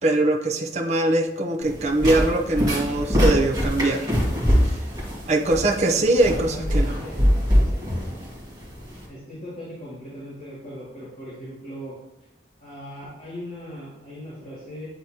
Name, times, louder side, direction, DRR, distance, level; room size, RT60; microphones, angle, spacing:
voice 1, 0.0-4.1 5.3-7.0, right 2 dB, 40° right, 1 dB, 0.7 m, -22 dB
sound 1, 1.6-9.0, equal, 20° right, 1.9 m, -23 dB
voice 2, 6.1-7.2 7.6-7.8 9.1-12.0 12.6-14.9, equal, 35° left, -10 dB, 2.0 m, -38 dB
8.9 x 4.0 x 2.8 m, 0.95 s
head